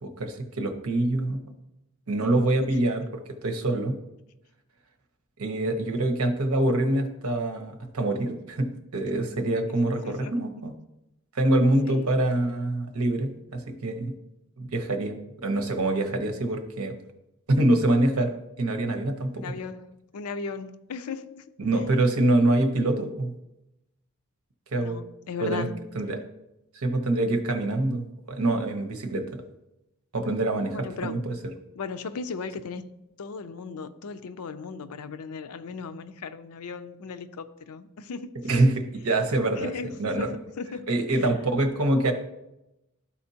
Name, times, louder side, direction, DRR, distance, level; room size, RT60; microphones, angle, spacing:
voice 1, 0.0-1.4 2.1-3.1 3.4-4.0 5.4-10.7 11.3-14.1 14.6-16.9 17.5-18.3 18.6-19.5 21.6-23.3 24.7-25.0 25.4-25.7 25.9-26.2 26.7-29.4 30.1-30.8 31.0-31.4 38.4-39.7 40.0-40.3 40.9-42.1, right 2 dB, 70° right, 5 dB, 1.0 m, -25 dB
voice 2, 19.3-21.5 24.8-25.8 30.7-31.2 31.7-32.9 33.2-38.5 39.6-39.9 40.2-40.3 40.6-40.9 41.1-41.3, left 4 dB, 80° left, 11 dB, 0.5 m, -37 dB
12.5 x 4.3 x 2.8 m, 0.92 s
head